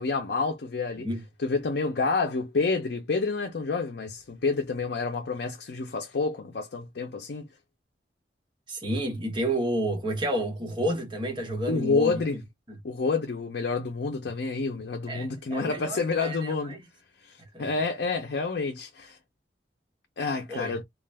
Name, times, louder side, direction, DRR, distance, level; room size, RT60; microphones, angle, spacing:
voice 1, 0.0-1.1 1.4-7.5 11.7-12.4 12.8-16.8 17.2-19.2 20.2-20.8, left 4 dB, 70° left, 0.5 m, -28 dB
voice 2, 8.7-12.2 12.7-12.8 15.1-16.8 17.5-17.7 20.5-20.7, right 1 dB, 25° right, 0.8 m, -30 dB
2.5 x 2.0 x 3.2 m
head